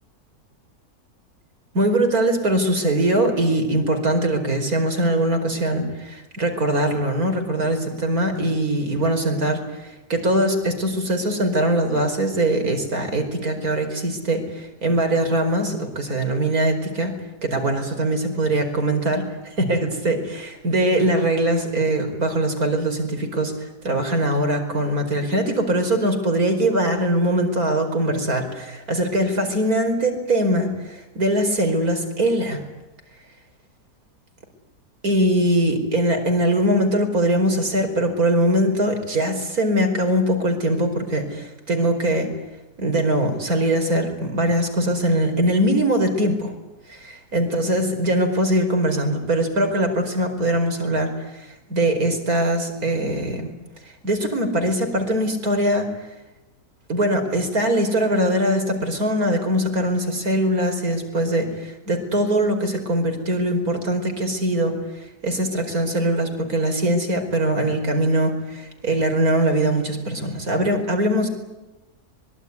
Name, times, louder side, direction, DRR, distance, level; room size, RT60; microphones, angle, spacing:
voice 1, 1.7-17.1 17.4-32.6 35.0-42.3 42.8-46.5 46.9-53.5 54.0-55.9 56.9-64.8 65.2-71.3, right 1 dB, 70° right, 6 dB, 5.3 m, -22 dB
25.0 x 23.0 x 9.7 m, 1.0 s
omnidirectional pair, 1.6 m